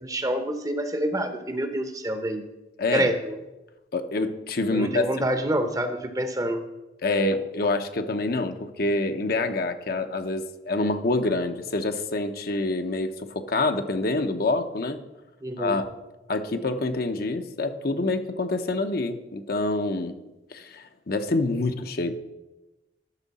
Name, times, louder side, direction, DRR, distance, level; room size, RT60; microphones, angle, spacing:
voice 1, 0.0-2.4 2.9-3.4 4.7-6.6 15.4-15.8, right 1 dB, 20° right, 8 dB, 0.7 m, -27 dB
voice 2, 2.8-3.1 3.9-5.1 7.0-15.0 15.6-15.8 16.3-20.1 20.5-22.1, left 2 dB, 55° left, 7 dB, 0.7 m, -26 dB
12.0 x 6.4 x 4.1 m, 1.0 s
head